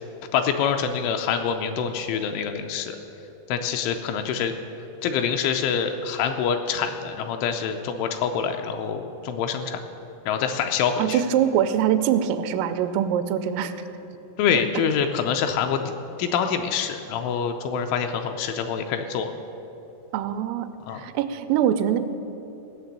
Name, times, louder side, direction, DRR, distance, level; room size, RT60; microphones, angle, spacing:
voice 1, 0.3-3.0 3.5-4.5 5.0-9.8 10.3-11.2 14.4-15.9 16.2-19.3 20.9-21.0, left 7 dB, 85° left, 5 dB, 2.9 m, -25 dB
voice 2, 11.0-13.7 20.1-20.7 20.9-22.0, right 9 dB, 85° right, 10 dB, 3.3 m, -23 dB
16.0 x 6.7 x 8.7 m, 3.0 s
omnidirectional pair, 5.8 m